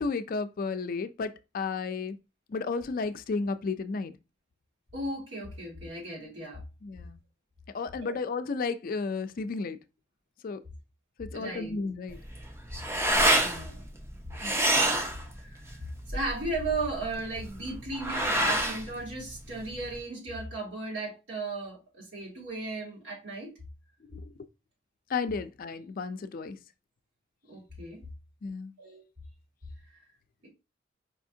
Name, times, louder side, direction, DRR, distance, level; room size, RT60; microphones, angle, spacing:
voice 1, 0.0-2.2 2.5-4.1 6.8-7.2 7.7-9.8 10.4-10.6 11.2-12.2 14.4-14.6 24.1-24.3 25.1-26.6 28.4-28.7, left 4 dB, 50° left, 0.4 m, -33 dB
voice 2, 4.9-6.6 8.0-8.1 11.3-11.8 13.4-13.8 15.4-15.8 16.1-23.5 27.5-28.0 28.8-29.0 30.4-30.5, right 2 dB, 75° right, 2.1 m, -36 dB
sound 1, 12.1-20.0, right 1 dB, 15° right, 0.6 m, -28 dB
4.9 x 3.5 x 2.7 m
head